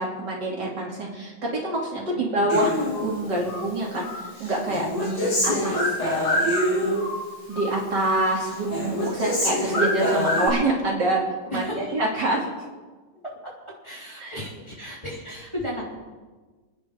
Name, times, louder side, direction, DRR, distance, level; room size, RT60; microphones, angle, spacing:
voice 1, 0.0-5.8 6.8-6.9 7.5-12.5 14.2-14.4, right 1 dB, 55° right, -3 dB, 3.2 m, -26 dB
voice 2, 2.0-2.5 5.4-5.7 11.5-12.1 13.8-15.8, equal, 15° left, -5 dB, 3.2 m, -34 dB
Human voice, 2.5-3.7 4.0-7.2 7.5-8.2 8.5-10.5, equal, 75° left, 4.4 m, -25 dB
29.5 x 10.0 x 3.7 m, 1.3 s
omnidirectional pair, 2.3 m